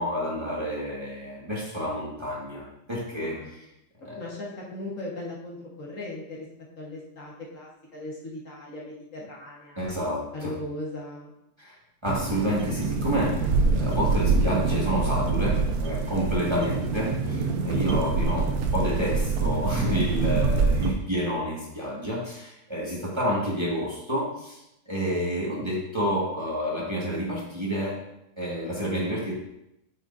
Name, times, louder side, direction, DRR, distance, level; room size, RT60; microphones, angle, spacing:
voice 1, 0.0-3.7 4.0-4.2 9.8-10.5 11.6-11.7 12.0-24.6 24.9-28.0 28.4-29.3, equal, 15° right, -5 dB, 1.6 m, -29 dB
voice 2, 3.1-3.5 4.0-6.5 6.8-9.9 10.3-11.3 16.4-16.9, left 2 dB, 55° left, -4 dB, 1.8 m, -38 dB
sound 1, 12.1-20.9, right 4 dB, 70° right, 1.3 m, -25 dB
9.0 x 6.4 x 2.6 m, 0.84 s
omnidirectional pair, 1.7 m